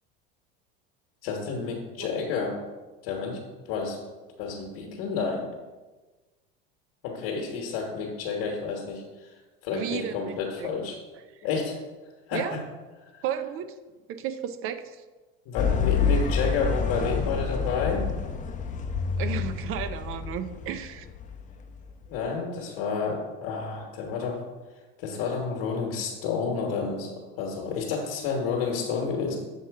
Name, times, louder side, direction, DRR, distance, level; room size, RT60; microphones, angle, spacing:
voice 1, 1.2-2.6 3.0-3.4 3.7-4.0 4.4-5.5 7.0-9.0 9.6-11.0 11.4-11.7 12.3-12.6 13.1-13.2 15.5-18.1 22.1-24.4 25.0-27.1 27.4-29.4, left 5 dB, 65° left, -1 dB, 1.1 m, -30 dB
voice 2, 9.7-10.7 11.1-11.3 12.3-12.6 13.2-13.7 14.1-15.0 19.2-21.1, right 9 dB, 50° right, 11 dB, 0.5 m, -33 dB
sound 1, 15.6-21.9, left 5 dB, 25° left, 0.7 m, -28 dB
7.0 x 3.0 x 4.6 m, 1.2 s
supercardioid pair, 95°, 29 cm